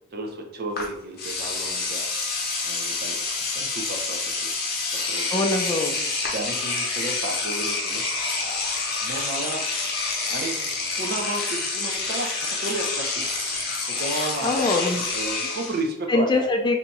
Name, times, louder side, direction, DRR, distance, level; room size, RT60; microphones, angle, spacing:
voice 1, 0.1-2.1 2.6-4.5 4.9-5.5 6.3-8.0 9.0-9.6 10.3-10.6 11.0-13.3 13.9-14.7 15.1-16.4, right 2 dB, 50° right, 2 dB, 0.6 m, -32 dB
Engine / Domestic sounds home sounds, 0.8-0.9 1.2-15.8, left 3 dB, 55° left, 0.7 m, -28 dB
voice 2, 5.3-6.0 14.4-15.0 16.1-16.8, left 2 dB, 25° left, 3 dB, 0.4 m, -23 dB
2.8 x 2.3 x 4.0 m, 0.77 s
head